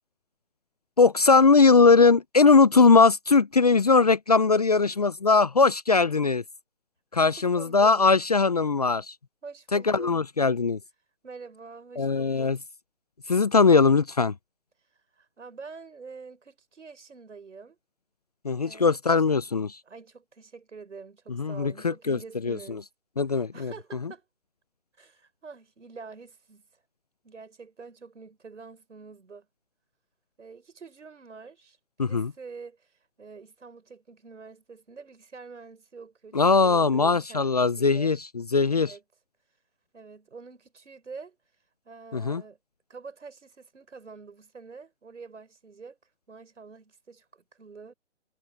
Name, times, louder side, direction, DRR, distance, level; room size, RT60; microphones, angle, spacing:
voice 1, 1.0-6.4 7.1-9.1 9.7-10.8 12.0-12.6 13.3-14.3 18.4-19.8 21.3-22.8 23.2-23.7 32.0-32.3 36.3-38.9 42.1-42.4, left 4 dB, 35° left, 0.5 m, -20 dB
voice 2, 7.4-8.0 9.4-10.2 11.2-12.6 15.2-17.8 18.6-19.0 19.8-22.9 23.5-24.2 25.0-26.6 27.2-29.5 30.4-32.9 33.2-38.2 38.7-39.0 39.9-41.4 41.8-42.6 42.9-46.0 46.3-47.9, right 4 dB, 75° right, 6.8 m, -46 dB
hypercardioid pair, 160°, 37 cm